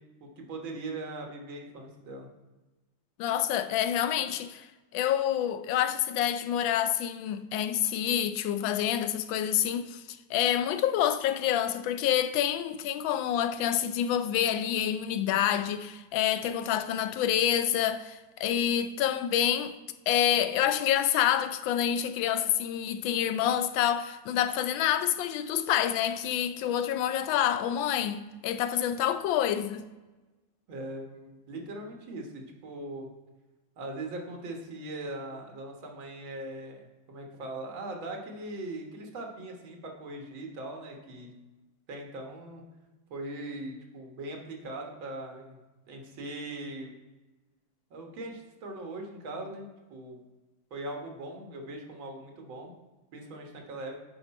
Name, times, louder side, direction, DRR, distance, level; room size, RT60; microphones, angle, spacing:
voice 1, 0.2-2.3 30.7-33.1 33.8-41.3 41.9-42.6 43.1-45.6 45.9-46.9 47.9-50.2 50.7-52.7 53.1-53.9, right 2 dB, 85° right, 2.1 m, -40 dB
voice 2, 3.2-4.7 4.9-19.8 20.1-29.8, left 10 dB, 85° left, 1.3 m, -27 dB
9.2 x 4.9 x 4.2 m
omnidirectional pair, 2.1 m